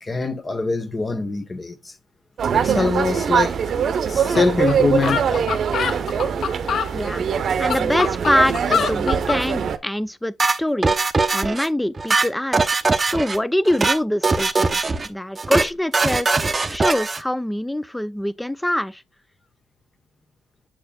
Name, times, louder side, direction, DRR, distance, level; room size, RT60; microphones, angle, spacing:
voice 1, 0.0-1.9 2.5-3.6 4.1-5.5, left 3 dB, 25° left, 1.1 m, -23 dB
people jabbering bar spanish tuna street music band, 2.4-9.8, right 7 dB, 55° right, 0.8 m, -22 dB
sound 1, 4.3-4.4 4.7-4.8 5.0-6.9 7.5-9.4, left 7 dB, 55° left, 0.5 m, -24 dB
voice 2, 6.9-7.2 7.6-11.0 11.3-12.6 13.0-16.3 16.7-19.0, left 1 dB, 5° left, 0.5 m, -24 dB
sound 2, 10.4-11.7 12.0-13.4 13.7-14.0 14.2-15.1 15.4-15.7 15.9-17.2, right 3 dB, 25° right, 0.8 m, -21 dB
7.5 x 6.6 x 2.3 m
cardioid pair, 90°, 0 cm